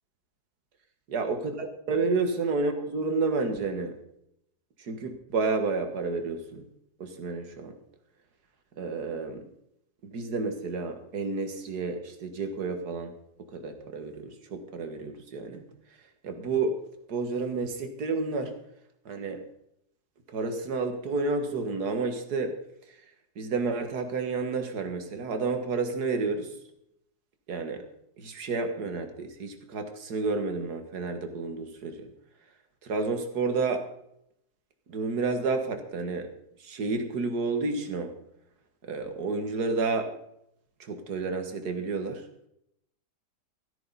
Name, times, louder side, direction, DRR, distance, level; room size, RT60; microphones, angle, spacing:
voice 1, 1.1-4.0 4.8-6.6 7.0-7.7 8.8-9.4 10.0-13.1 13.4-15.6 16.2-16.8 17.1-18.5 19.1-19.4 20.3-22.6 23.4-26.5 27.5-27.8 28.2-32.1 32.8-33.9 34.9-36.3 36.6-38.1 38.9-40.1 40.8-42.2, right 4 dB, 70° right, 6 dB, 2.2 m, -30 dB
15.0 x 13.5 x 4.2 m, 0.76 s
omnidirectional pair, 1.8 m